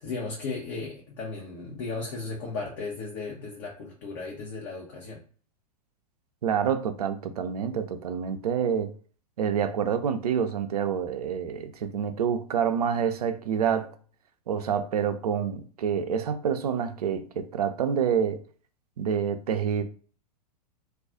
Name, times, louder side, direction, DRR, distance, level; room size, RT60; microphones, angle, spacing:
voice 1, 0.0-5.2, left 3 dB, 45° left, 0.9 m, -35 dB
voice 2, 6.4-8.9 9.4-13.9 14.5-18.4 19.0-19.8, right 7 dB, 65° right, 0.5 m, -27 dB
2.5 x 2.3 x 3.7 m
figure-of-eight pair, 100°, 21 cm